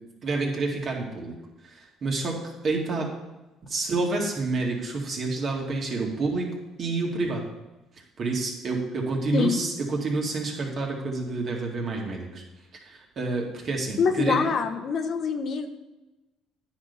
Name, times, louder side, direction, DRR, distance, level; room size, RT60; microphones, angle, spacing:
voice 1, 0.2-1.4 1.6-2.4 2.6-3.1 3.7-6.5 6.8-7.5 8.2-12.4 12.8-14.4, right 3 dB, 50° right, 0 dB, 2.3 m, -28 dB
voice 2, 14.0-15.7, left 5 dB, 55° left, 7 dB, 0.9 m, -25 dB
10.0 x 4.4 x 6.9 m, 1.1 s
supercardioid pair, 70°, 0 cm